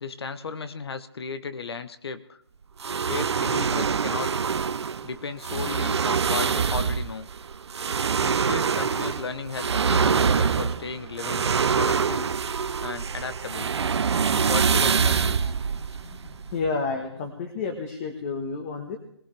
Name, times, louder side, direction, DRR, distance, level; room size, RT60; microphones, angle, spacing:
voice 1, 0.0-2.4 3.1-4.3 5.0-7.3 8.2-11.5 11.7-12.3 12.8-13.7 14.3-15.5, left 5 dB, 65° left, 12 dB, 1.0 m, -35 dB
sound 1, 2.8-16.7, right 6 dB, 75° right, 0.7 m, -25 dB
voice 2, 15.8-19.0, left 4 dB, 30° left, 5 dB, 1.4 m, -31 dB
21.5 x 16.0 x 3.4 m, 0.73 s
hypercardioid pair, 155°, 14 cm